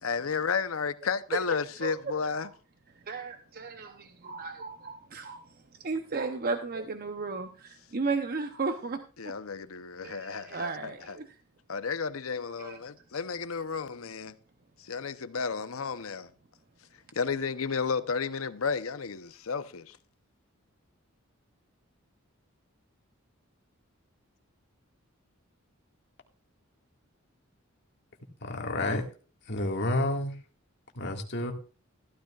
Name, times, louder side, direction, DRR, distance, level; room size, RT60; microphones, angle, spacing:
voice 1, 0.0-2.5 9.2-11.2 11.7-14.3 14.9-16.3 17.1-20.0, left 5 dB, 90° left, 0.8 m, -32 dB
voice 2, 1.8-2.5 3.1-9.3 10.0-11.4 12.6-12.8, right 4 dB, 45° right, 0.8 m, -35 dB
voice 3, 28.4-29.0 29.5-30.3 31.0-31.5, left 1 dB, 55° left, 2.0 m, -29 dB
15.0 x 13.0 x 2.4 m
head